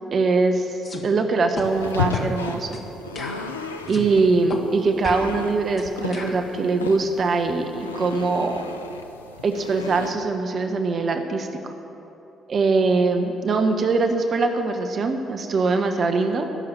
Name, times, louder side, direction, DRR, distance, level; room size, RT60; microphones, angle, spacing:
voice 1, 0.1-0.7 1.0-2.7 3.9-8.6 9.4-11.7 12.5-16.5, right 3 dB, 45° right, 5 dB, 1.1 m, -22 dB
sound 1, 0.8-1.0 1.6-1.7 2.1-2.3 2.7-2.9 3.2-4.1 4.5-4.6 5.0-6.4, left 3 dB, 40° left, 1.7 m, -34 dB
sound 2, 1.6-10.1, left 5 dB, 85° left, 0.5 m, -34 dB
14.5 x 6.9 x 9.4 m, 3.0 s
figure-of-eight pair, 45°, 0 cm